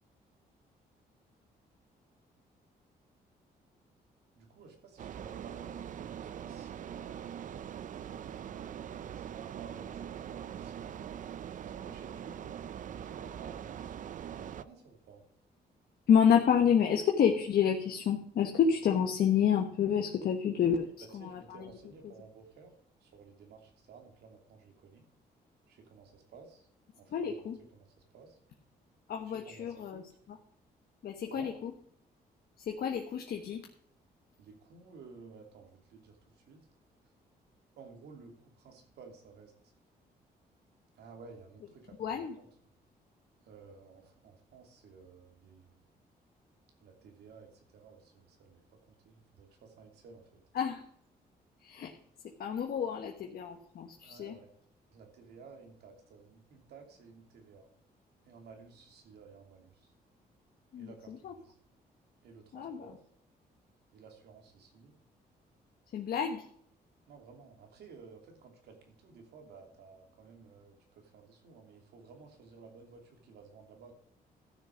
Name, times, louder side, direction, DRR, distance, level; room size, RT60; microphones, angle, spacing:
voice 1, 4.4-7.7 8.0-11.0 11.6-12.6 12.9-14.0 14.3-15.2 21.2-22.7 23.0-25.0 25.7-26.7 27.0-27.3 28.1-28.4 29.4-30.0 31.3-31.5 34.4-36.7 37.8-39.7 41.0-42.4 43.4-45.8 46.8-50.4 54.0-54.5 54.9-57.7 58.3-59.9 60.8-61.6 62.2-63.0 63.9-64.9 67.1-73.9, right 5 dB, 85° right, 3 dB, 2.9 m, -54 dB
sound 1, 5.0-14.6, right 9 dB, 50° right, 0.5 m, -42 dB
voice 2, 16.1-20.9 21.1-21.7 22.0-22.1 27.1-27.6 29.1-30.0 30.3-30.4 31.0-31.7 32.6-33.7 42.0-42.3 50.5-50.8 51.6-51.9 52.2-54.4 60.7-61.3 62.5-63.0 65.9-66.4, left 8 dB, 70° left, 3 dB, 1.2 m, -29 dB
14.0 x 6.6 x 5.1 m, 0.62 s
cardioid pair, 110°, 16 cm